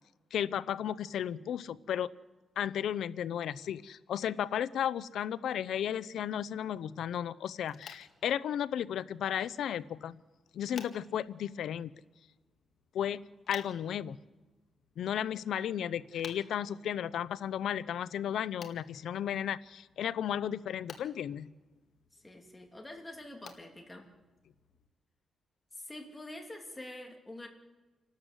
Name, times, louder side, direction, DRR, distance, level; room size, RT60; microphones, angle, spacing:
voice 1, 0.3-2.1 2.6-10.2 10.5-11.9 12.9-13.2 13.5-14.2 15.0-21.5, left 9 dB, 80° left, 17 dB, 0.6 m, -34 dB
sound 1, 7.6-24.9, left 6 dB, 55° left, 1.9 m, -56 dB
voice 2, 22.1-24.1 25.7-27.5, left 1 dB, 10° left, 2 dB, 2.7 m, -46 dB
28.5 x 12.5 x 8.0 m, 1.2 s
wide cardioid pair, 170°, 0 cm